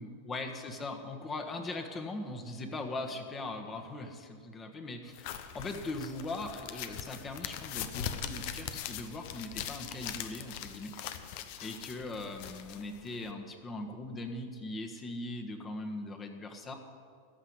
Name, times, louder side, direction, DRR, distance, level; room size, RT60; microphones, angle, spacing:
voice 1, 0.0-10.9 11.6-16.7, left 2 dB, 25° left, 4 dB, 1.5 m, -40 dB
sound 1, 5.1-13.3, left 9 dB, 55° left, 0.9 m, -41 dB
14.5 x 5.8 x 9.6 m, 2.1 s
hypercardioid pair, 95°, 0 cm